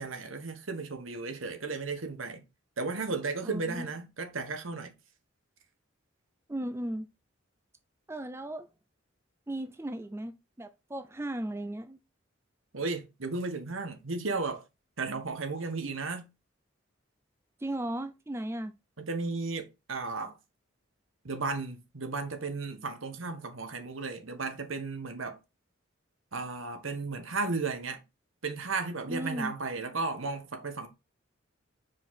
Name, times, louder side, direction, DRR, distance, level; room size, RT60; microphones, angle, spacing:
voice 1, 0.0-2.4 2.8-4.9 12.7-14.6 15.0-16.3 19.0-20.4 21.2-25.4 26.3-28.0 28.4-30.9, right 3 dB, 80° right, 1.3 m, -34 dB
voice 2, 3.4-3.9 6.5-7.1 8.1-8.7 9.5-12.0 17.6-18.7 29.1-29.5, right 1 dB, 15° right, 0.5 m, -36 dB
5.1 x 4.8 x 4.1 m
head